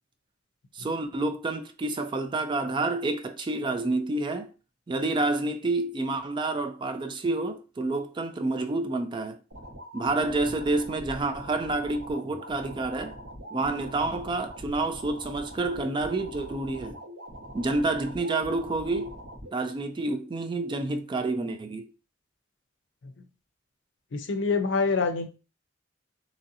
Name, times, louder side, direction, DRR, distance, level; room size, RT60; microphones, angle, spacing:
voice 1, 0.7-4.5 4.9-9.4 9.9-13.2 13.5-17.0 17.5-19.1 19.5-21.9, right 2 dB, 25° right, 0.3 m, -29 dB
sound 1, 9.5-19.5, equal, 85° right, 1.2 m, -43 dB
voice 2, 24.1-25.3, left 4 dB, 75° left, 0.5 m, -25 dB
3.0 x 2.6 x 2.6 m
head